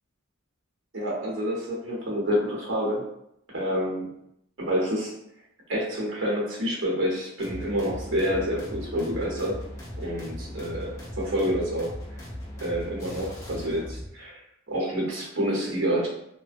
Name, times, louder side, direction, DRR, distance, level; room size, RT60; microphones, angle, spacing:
voice 1, 0.9-3.0 3.5-4.1 4.6-5.1 5.7-9.5 10.0-11.9 12.6-14.4 14.7-16.1, equal, 70° right, -4 dB, 0.9 m, -28 dB
sound 1, 7.4-14.1, left 1 dB, 15° left, 0.6 m, -38 dB
2.4 x 2.0 x 2.5 m, 0.76 s
head